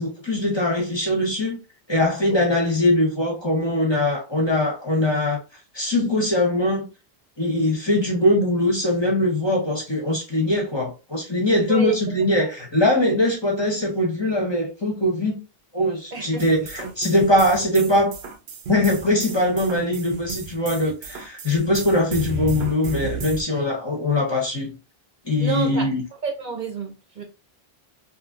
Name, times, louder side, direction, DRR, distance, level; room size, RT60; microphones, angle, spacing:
voice 1, 0.0-1.6 1.9-5.4 5.7-6.9 7.4-15.4 15.7-18.1 18.7-24.8 25.2-26.0, left 1 dB, 30° left, 0.8 m, -21 dB
voice 2, 16.1-16.5 25.4-25.9 26.2-27.2, right 4 dB, 50° right, 0.8 m, -29 dB
sound 1, 16.4-23.4, right 5 dB, 80° right, 0.9 m, -33 dB
2.8 x 2.7 x 2.4 m
omnidirectional pair, 1.0 m